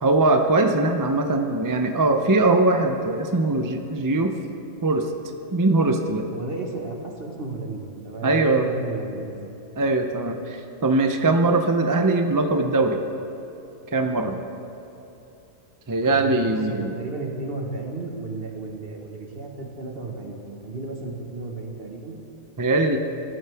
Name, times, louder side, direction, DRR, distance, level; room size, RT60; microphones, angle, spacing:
voice 1, 0.0-4.3 4.8-5.0 5.5-6.3 8.2-8.6 9.8-10.6 10.8-13.0 13.9-14.4 15.9-16.9 22.6-23.0, right 2 dB, 25° right, 5 dB, 0.4 m, -21 dB
voice 2, 6.3-9.4 16.1-22.1, right 3 dB, 45° right, 1 dB, 1.7 m, -33 dB
20.0 x 12.5 x 3.5 m, 2.9 s
omnidirectional pair, 1.3 m